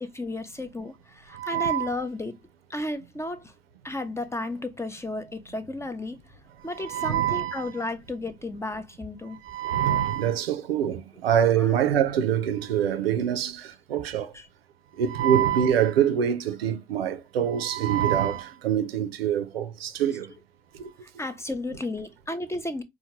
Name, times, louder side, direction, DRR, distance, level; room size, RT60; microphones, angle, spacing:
voice 1, 0.0-2.4 2.7-3.5 3.8-6.2 6.6-9.4 11.6-11.8 13.1-13.2 14.3-14.5 21.0-22.8, left 2 dB, 10° left, 0.5 m, -33 dB
voice 2, 1.3-1.9 6.8-7.7 9.4-14.3 15.0-20.3 20.7-20.9, right 9 dB, 85° right, 0.5 m, -25 dB
4.4 x 2.2 x 2.8 m
hypercardioid pair, 70°, 29 cm